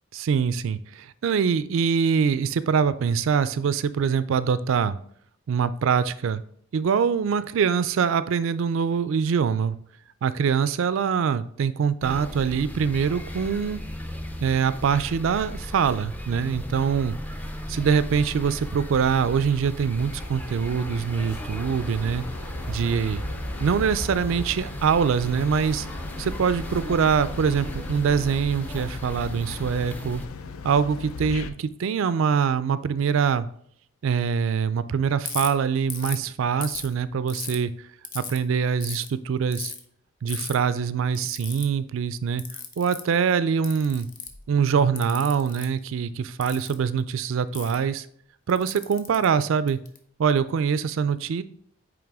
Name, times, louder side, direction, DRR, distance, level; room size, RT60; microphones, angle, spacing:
voice 1, 0.1-5.0 5.5-6.4 6.7-9.8 10.2-13.8 14.4-17.2 17.7-22.2 22.7-23.2 23.6-25.9 26.2-30.2 30.6-33.5 34.0-37.7 38.1-39.7 40.2-42.4 42.8-44.1 44.5-48.1 48.5-49.8 50.2-51.4, right 6 dB, 65° right, 15 dB, 0.3 m, -24 dB
sound 1, 12.0-30.3, equal, 10° left, 0.4 m, -35 dB
sound 2, 20.0-31.5, left 4 dB, 80° left, 0.5 m, -40 dB
Ratchet pawl, 35.2-35.5 35.9-36.2 36.6-37.6 38.0-38.4 38.8-39.1 39.5-39.8 40.3-40.5 41.1-41.7 42.4-43.1 43.6-44.4 45.0-45.7 46.4-46.7 47.5-47.8 48.5-50.0, left 6 dB, 40° left, 0.7 m, -35 dB
8.7 x 3.3 x 3.5 m, 0.63 s
head